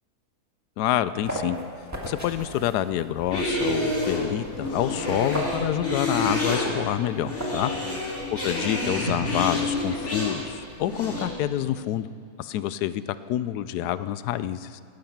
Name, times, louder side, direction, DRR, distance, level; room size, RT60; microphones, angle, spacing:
voice 1, 0.8-1.6 2.0-7.7 8.4-12.1 12.4-14.8, left 12 dB, 85° left, 14 dB, 1.1 m, -27 dB
sound 1, 0.8-7.9, equal, 10° right, 1.6 m, -38 dB
sound 2, 3.1-11.3, left 2 dB, 45° left, 2.9 m, -28 dB
16.0 x 12.0 x 5.9 m, 2.3 s
omnidirectional pair, 1.7 m